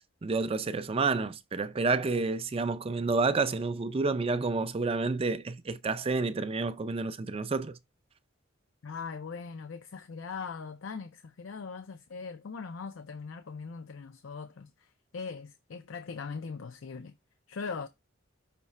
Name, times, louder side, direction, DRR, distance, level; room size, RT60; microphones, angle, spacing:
voice 1, 0.2-7.8, right 3 dB, 30° right, 0.4 m, -29 dB
voice 2, 8.8-17.1 17.5-17.9, left 5 dB, 70° left, 0.5 m, -40 dB
5.9 x 3.1 x 5.4 m
head